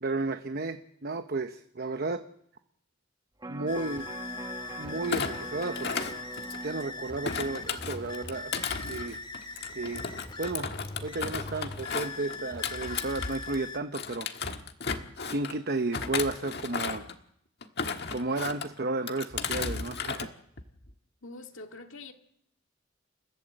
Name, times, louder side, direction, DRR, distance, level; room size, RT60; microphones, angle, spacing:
voice 1, 0.0-2.2 3.5-4.1 4.8-6.1 6.6-8.5 8.9-9.2 9.7-10.0 10.4-10.7 11.0-14.6 15.3-17.1 18.1-20.3, right 3 dB, 55° right, 8 dB, 0.9 m, -33 dB
Electric guitar, 3.4-9.6 10.0-10.1, right 2 dB, 20° right, 1.1 m, -44 dB
sound 1, 3.7-13.8, left 3 dB, 25° left, 2.2 m, -41 dB
Thump thud, 5.0-6.8 7.2-13.6 13.9-15.5 15.9-17.2 17.6-18.7 19.1-20.3 20.6-20.9, left 5 dB, 55° left, 1.6 m, -35 dB
voice 2, 21.2-22.1, left 2 dB, 90° left, 5 dB, 2.1 m, -44 dB
29.0 x 15.5 x 7.8 m, 0.73 s
head